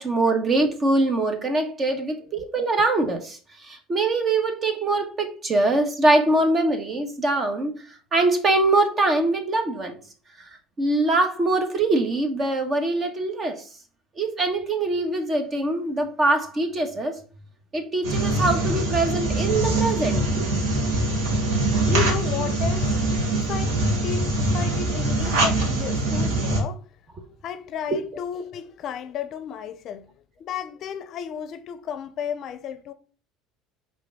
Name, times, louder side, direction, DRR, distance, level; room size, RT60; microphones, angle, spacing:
voice 1, 0.0-7.7 8.1-10.0 10.4-13.7 14.2-17.2 17.7-20.5 20.7-20.8 27.9-28.0, right 2 dB, 30° right, 1.4 m, -23 dB
sound 1, 18.0-26.6, right 2 dB, 85° right, 1.9 m, -23 dB
voice 2, 21.9-26.8 27.4-30.1 30.4-32.9, left 8 dB, 50° left, 0.6 m, -33 dB
5.1 x 3.7 x 5.6 m
supercardioid pair, 120°, 0 cm